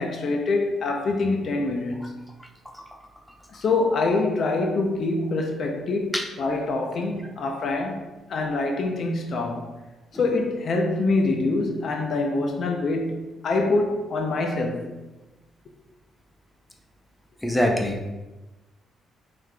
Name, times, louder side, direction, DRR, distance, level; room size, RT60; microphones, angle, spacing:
voice 1, 0.0-2.1 3.5-9.7 10.1-14.9, left 3 dB, 55° left, 0.5 m, -25 dB
voice 2, 17.4-18.1, left 1 dB, 5° left, 0.6 m, -24 dB
5.5 x 3.2 x 2.3 m
cardioid pair, 90°, 0 cm